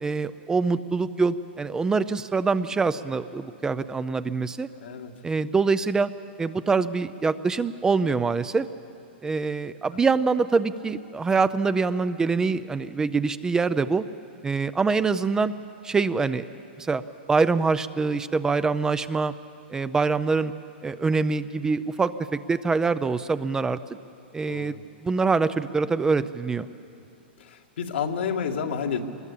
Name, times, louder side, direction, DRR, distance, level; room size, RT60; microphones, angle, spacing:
voice 1, 0.0-4.7 5.2-6.1 6.4-8.7 9.2-14.0 14.4-15.5 15.8-16.5 16.8-17.0 17.3-19.3 19.7-20.5 20.8-23.8 24.3-24.7 25.0-26.7, right 4 dB, 10° right, 13 dB, 0.5 m, -24 dB
voice 2, 4.8-5.1 24.5-24.8 27.4-29.0, left 7 dB, 80° left, 3 dB, 2.2 m, -30 dB
23.5 x 20.5 x 8.5 m, 2.6 s
hypercardioid pair, 145°, 6 cm